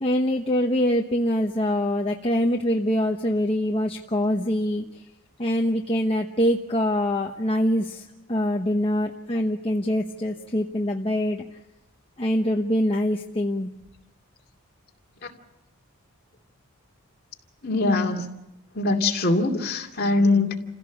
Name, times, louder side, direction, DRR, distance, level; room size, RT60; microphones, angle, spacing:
voice 1, 0.0-5.0 5.4-11.4 12.2-13.7, equal, 25° left, 1 dB, 1.0 m, -24 dB
voice 2, 17.6-18.3 18.7-20.5, left 2 dB, 45° left, 2 dB, 2.5 m, -22 dB
28.5 x 16.5 x 7.3 m, 0.96 s
head